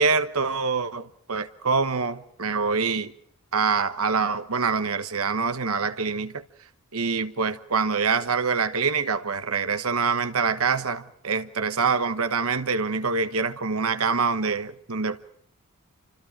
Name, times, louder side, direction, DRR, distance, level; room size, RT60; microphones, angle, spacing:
voice 1, 0.0-3.1 3.5-6.4 6.9-15.2, right 5 dB, 75° right, 1.1 m, -25 dB
28.5 x 25.5 x 4.9 m
head